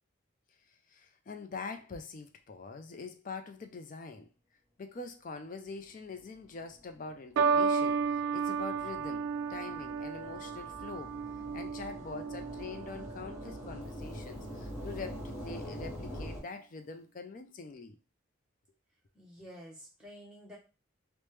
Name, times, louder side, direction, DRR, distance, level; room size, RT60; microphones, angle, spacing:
voice 1, 0.7-4.3 4.8-11.2 11.5-18.0 19.4-19.5, left 4 dB, 40° left, 0.3 m, -44 dB
sound 1, 6.3-16.4, equal, 15° left, 1.2 m, -45 dB
sound 2, 7.4-13.9 14.7-15.1, right 5 dB, 85° right, 0.3 m, -33 dB
voice 2, 19.1-20.6, equal, 5° right, 0.8 m, -50 dB
3.0 x 2.1 x 3.2 m
head